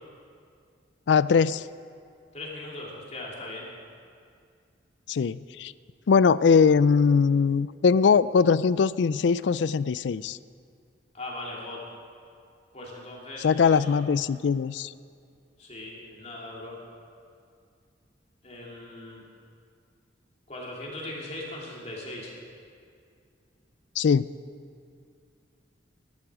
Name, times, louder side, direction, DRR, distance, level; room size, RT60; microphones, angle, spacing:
voice 1, 1.1-1.6 5.1-5.7 6.1-10.4 13.4-14.9 24.0-24.3, left 5 dB, 70° left, 17 dB, 0.4 m, -21 dB
voice 2, 2.3-3.7 11.1-11.8 12.7-14.0 15.6-16.8 18.4-19.2 20.5-22.3, left 1 dB, 35° left, -4 dB, 2.9 m, -39 dB
19.5 x 11.5 x 4.9 m, 2.3 s
head